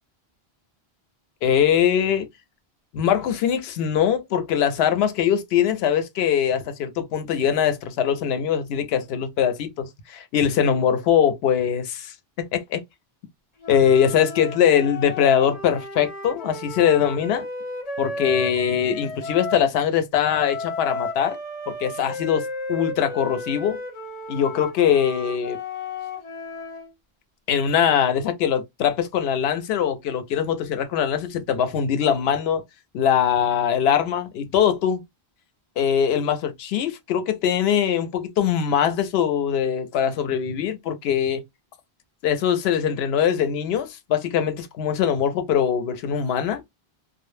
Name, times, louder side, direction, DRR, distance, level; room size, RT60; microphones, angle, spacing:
voice 1, 1.4-2.3 2.9-12.1 12.5-12.8 13.7-17.4 18.0-21.4 21.8-23.8 24.3-25.6 27.5-32.6 32.9-35.0 35.8-41.4 42.2-46.6, left 8 dB, 80° left, 0.8 m, -22 dB
sound 1, 13.6-19.7 20.2-26.9, left 2 dB, 40° left, 0.8 m, -34 dB
2.1 x 2.0 x 3.0 m
omnidirectional pair, 1.1 m